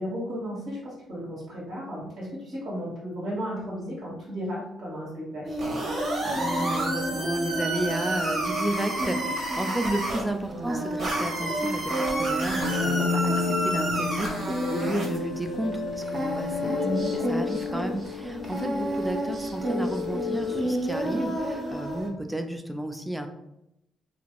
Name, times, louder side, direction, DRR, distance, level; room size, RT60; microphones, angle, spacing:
voice 1, 0.0-5.4 10.5-10.8 16.8-17.2, equal, 75° right, -7 dB, 1.3 m, -34 dB
Singing, 5.4-22.1, right 1 dB, 40° right, 0.7 m, -32 dB
sound 1, 5.6-10.2 11.0-15.2, right 1 dB, 55° right, 1.0 m, -30 dB
voice 2, 5.9-23.3, right 1 dB, 5° right, 6 dB, 0.4 m, -32 dB
sound 2, 12.6-21.6, left 5 dB, 80° left, 0.4 m, -32 dB
2.8 x 2.5 x 2.9 m, 0.86 s
cardioid pair, 90°, 0 cm